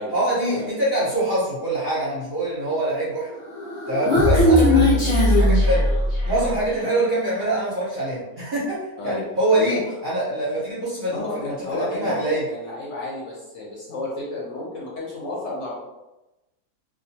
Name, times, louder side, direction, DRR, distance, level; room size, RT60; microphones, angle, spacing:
voice 1, 0.1-3.3 3.9-5.9 6.2-12.4, right 1 dB, 45° right, -8 dB, 0.7 m, -24 dB
Human voice, 3.5-6.5, left 1 dB, 40° left, 0.4 m, -18 dB
voice 2, 11.1-15.8, left 2 dB, 60° left, -5 dB, 0.9 m, -32 dB
2.4 x 2.2 x 2.7 m, 1.0 s
omnidirectional pair, 1.6 m